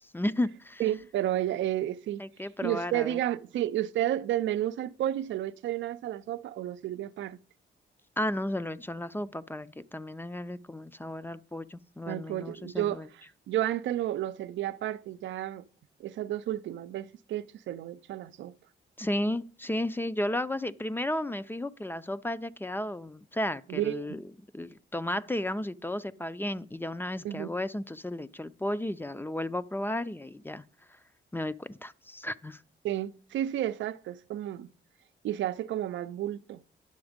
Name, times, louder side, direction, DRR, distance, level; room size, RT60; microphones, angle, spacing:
voice 1, 0.0-0.8 2.2-3.2 8.2-13.1 19.0-24.3 24.5-30.6 31.3-32.6, left 1 dB, 10° left, 0.5 m, -33 dB
voice 2, 0.8-2.2 2.6-7.4 12.1-13.1 13.5-15.6 16.0-18.5 23.7-24.2 27.2-27.5 32.8-34.7 35.2-36.6, right 13 dB, 90° right, 0.5 m, -31 dB
10.5 x 7.0 x 5.1 m
cardioid pair, 90°, 19 cm